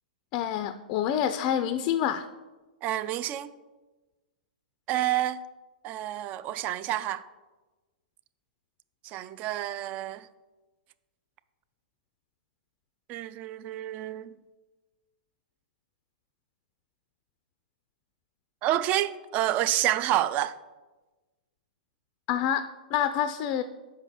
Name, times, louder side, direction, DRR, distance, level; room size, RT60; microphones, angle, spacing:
voice 1, 0.3-2.2 22.3-23.6, left 10 dB, 35° left, 0.4 m, -27 dB
voice 2, 2.8-3.5 4.9-5.4 5.8-7.2 9.0-10.3 13.1-14.3 18.6-20.5, right 13 dB, 30° right, 0.4 m, -28 dB
5.7 x 5.5 x 6.7 m
figure-of-eight pair, 110°, 5 cm